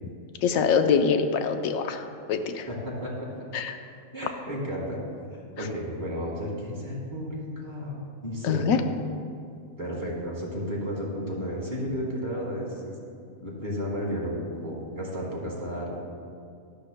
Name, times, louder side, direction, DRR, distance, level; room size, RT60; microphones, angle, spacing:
voice 1, 0.4-2.7 3.5-3.8 8.4-8.8, left 6 dB, 75° left, 7 dB, 1.0 m, -24 dB
voice 2, 2.7-3.4 4.1-5.0 5.6-8.7 9.8-13.0 13.4-15.9, equal, 35° right, -4 dB, 2.2 m, -33 dB
13.0 x 11.0 x 2.2 m, 2.3 s
omnidirectional pair, 1.4 m